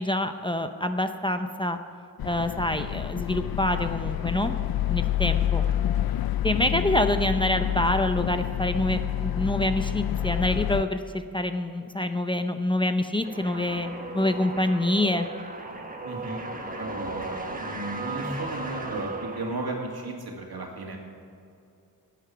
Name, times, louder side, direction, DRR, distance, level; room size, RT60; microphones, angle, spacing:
voice 1, 0.0-1.8 2.2-4.6 4.9-5.6 6.4-15.3, left 1 dB, 15° left, 7 dB, 0.6 m, -26 dB
sound 1, 2.2-10.8, left 11 dB, 70° left, 0.5 m, -28 dB
sound 2, 13.2-20.0, right 2 dB, 20° right, 1.4 m, -36 dB
voice 2, 16.0-16.5 16.7-19.1 19.3-21.0, right 2 dB, 80° right, 0 dB, 2.4 m, -35 dB
15.5 x 9.2 x 5.9 m, 2.6 s
wide cardioid pair, 110°, 37 cm